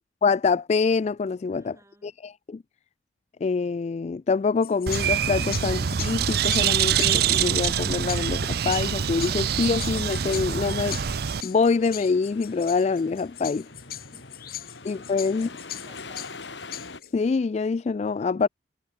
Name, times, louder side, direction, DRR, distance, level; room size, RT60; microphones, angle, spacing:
voice 1, 0.2-1.8 2.0-2.6 3.4-11.0 11.4-13.7 14.8-15.5 17.1-18.5, left 4 dB, 35° left, 0.3 m, -25 dB
voice 2, 1.5-2.2 14.0-14.8 15.1-16.6, right 1 dB, 15° right, 7.3 m, -55 dB
sound 1, 4.6-17.2, left 12 dB, 50° left, 5.6 m, -40 dB
Bird, 4.9-11.4, right 8 dB, 55° right, 0.5 m, -25 dB
sound 2, 9.0-17.0, left 3 dB, 75° left, 3.6 m, -44 dB
head